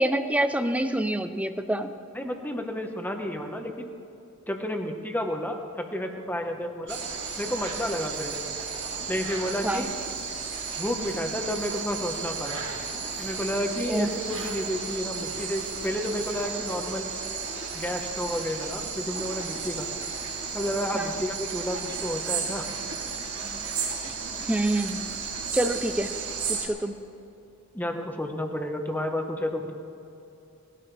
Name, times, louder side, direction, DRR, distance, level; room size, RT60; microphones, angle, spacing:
voice 1, 0.0-1.9 9.6-9.9 13.9-14.1 20.9-21.2 24.0-24.1 24.4-25.0 25.5-26.1 26.5-27.0, right 1 dB, 5° right, 9 dB, 0.6 m, -26 dB
voice 2, 2.1-3.9 4.5-7.0 7.4-8.5 9.1-9.9 10.8-12.6 13.2-17.1 17.7-19.9 20.5-22.7 27.7-29.8, left 1 dB, 10° left, 3 dB, 1.2 m, -31 dB
sound 1, 6.9-26.7, right 5 dB, 60° right, 3.0 m, -34 dB
21.0 x 15.5 x 3.4 m, 2.8 s
head